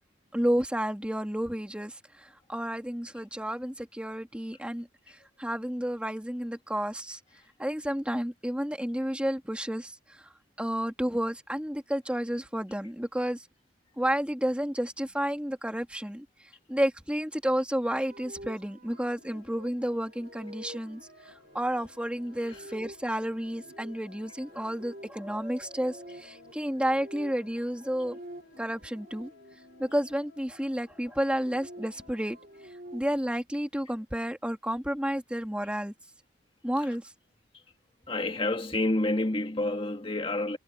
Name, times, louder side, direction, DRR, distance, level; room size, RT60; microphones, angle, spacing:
voice 1, 0.3-7.2 7.6-10.3 10.6-13.5 14.0-28.2 28.6-29.3 29.8-32.4 32.9-35.9 36.6-37.1, equal, 5° right, 2.2 m, -31 dB
sound 1, 18.0-29.9 31.1-33.3, right 1 dB, 45° right, 2.6 m, -49 dB
sound 2, 18.9-32.7, left 4 dB, 60° left, 3.8 m, -57 dB
voice 2, 38.1-40.6, left 2 dB, 30° left, 2.0 m, -28 dB
head